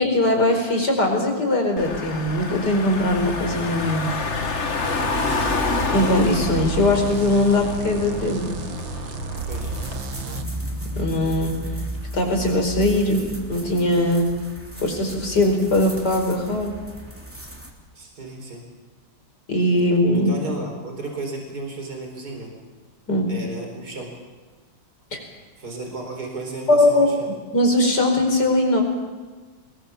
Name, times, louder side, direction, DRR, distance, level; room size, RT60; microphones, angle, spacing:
voice 1, 0.0-4.1 5.9-8.5 11.0-11.6 12.1-14.4 14.8-16.8 19.5-20.3 23.1-23.3 25.1-25.2 26.7-27.1 27.5-28.8, left 1 dB, 60° left, 3 dB, 5.2 m, -20 dB
Car / Engine, 1.8-10.0, left 3 dB, 40° left, 1.7 m, -28 dB
sound 1, 4.8-10.5, right 6 dB, 85° right, 2.0 m, -33 dB
voice 2, 4.9-5.6 9.5-9.7 17.9-18.6 20.1-22.5 23.3-24.1 25.6-27.3, right 2 dB, 55° right, 2 dB, 4.8 m, -34 dB
sound 2, 9.4-17.7, right 1 dB, 5° right, 3.4 m, -34 dB
24.5 x 21.0 x 7.1 m, 1.4 s
omnidirectional pair, 2.1 m